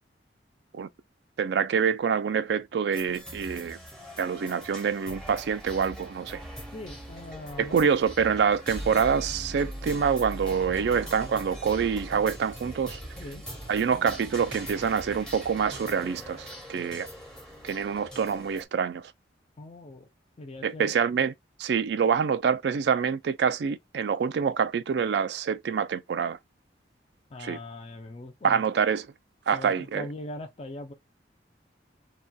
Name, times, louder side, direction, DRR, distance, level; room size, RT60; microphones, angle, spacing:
voice 1, 1.4-3.8 4.2-6.4 7.6-13.0 13.7-17.1 17.6-19.1 20.6-21.3 21.6-26.4 27.4-27.6 28.4-29.1 29.5-30.1, right 6 dB, 70° right, 0.3 m, -26 dB
sound 1, 2.9-18.7, equal, 5° left, 0.7 m, -41 dB
voice 2, 6.7-7.9 13.2-13.4 19.6-20.1 20.4-21.0 27.3-28.6 29.5-30.9, left 1 dB, 35° left, 0.4 m, -41 dB
2.7 x 2.2 x 2.2 m
head